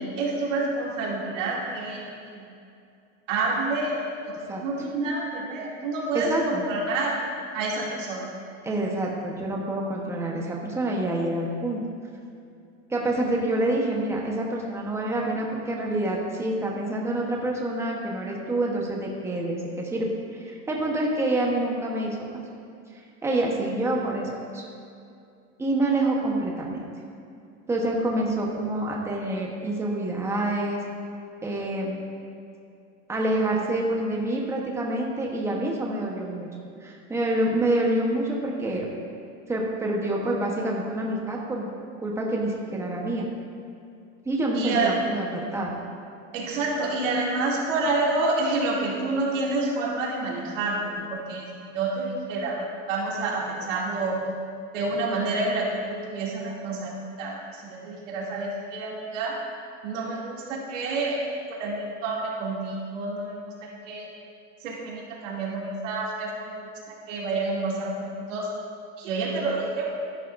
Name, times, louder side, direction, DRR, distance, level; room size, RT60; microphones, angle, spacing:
voice 1, 0.0-2.4 3.3-4.4 4.6-7.2 7.5-8.3 44.5-45.0 46.3-51.5 51.7-54.2 54.7-59.3 59.8-61.2 61.5-63.4 63.9-64.1 64.6-66.7 67.1-68.0 68.3-68.5 69.0-69.9, right 3 dB, 85° right, -4 dB, 2.6 m, -28 dB
voice 2, 6.1-6.6 8.6-11.8 12.9-22.3 23.2-24.6 25.6-26.8 27.7-30.8 31.4-32.1 33.1-36.5 36.8-38.9 39.5-41.7 42.0-43.3 44.2-45.7, right 1 dB, 5° right, -2 dB, 1.0 m, -27 dB
13.5 x 11.0 x 2.6 m, 2.5 s
supercardioid pair, 160°, 37 cm